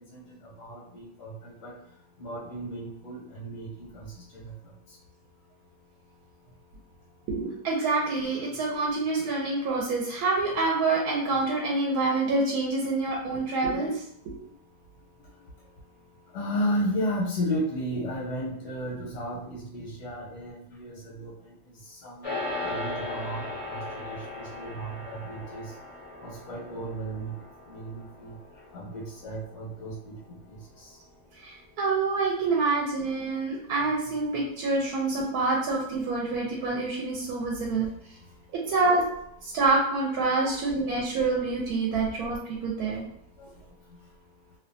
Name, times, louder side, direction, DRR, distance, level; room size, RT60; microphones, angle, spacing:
voice 1, 0.1-1.7 2.2-4.5 16.3-21.5 21.9-22.3 22.6-25.7 26.2-27.3 27.7-28.4 28.7-30.9 40.4-40.6 43.4-43.5, equal, 90° left, -5 dB, 1.2 m, -34 dB
voice 2, 7.3-14.4 31.4-37.9 38.7-39.0 39.4-43.1, right 3 dB, 80° right, -3 dB, 1.1 m, -27 dB
sound 1, 22.2-31.7, left 2 dB, 55° left, 0.3 m, -38 dB
2.9 x 2.2 x 2.5 m, 0.71 s
omnidirectional pair, 1.7 m